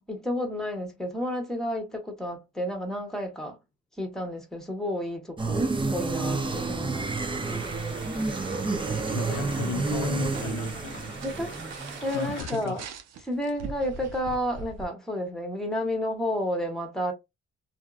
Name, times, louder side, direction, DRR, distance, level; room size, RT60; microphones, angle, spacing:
voice 1, 0.0-3.6 4.0-7.1 7.5-7.6 11.2-11.5 12.0-12.8 13.2-17.1, equal, ahead, 1.1 m, -31 dB
sound 1, 5.4-12.3, right 3 dB, 15° right, 0.5 m, -30 dB
sound 2, 7.4-12.4, right 3 dB, 40° right, 1.4 m, -43 dB
voice 2, 9.1-11.2 12.1-12.8, left 8 dB, 80° left, 0.6 m, -35 dB
sound 3, 10.2-14.9, right 5 dB, 60° right, 0.7 m, -43 dB
2.7 x 2.2 x 2.4 m
cardioid pair, 90°, 30 cm